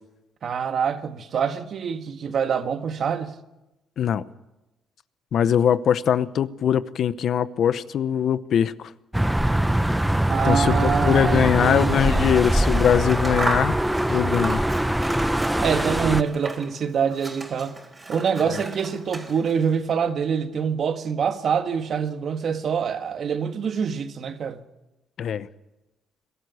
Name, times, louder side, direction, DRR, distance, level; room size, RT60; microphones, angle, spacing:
voice 1, 0.4-3.4 10.3-12.4 14.1-14.2 15.6-17.8 18.1-24.6, right 7 dB, 55° right, 1.6 m, -25 dB
voice 2, 5.3-8.7 10.4-13.8 14.1-14.6 25.2-25.5, left 9 dB, 65° left, 0.8 m, -21 dB
sound 1, 9.1-16.2, right 1 dB, 5° right, 0.7 m, -23 dB
Scissors, 12.3-16.8 17.1-19.7, right 2 dB, 20° right, 4.0 m, -34 dB
21.5 x 13.0 x 9.7 m
cardioid pair, 90°, 0 cm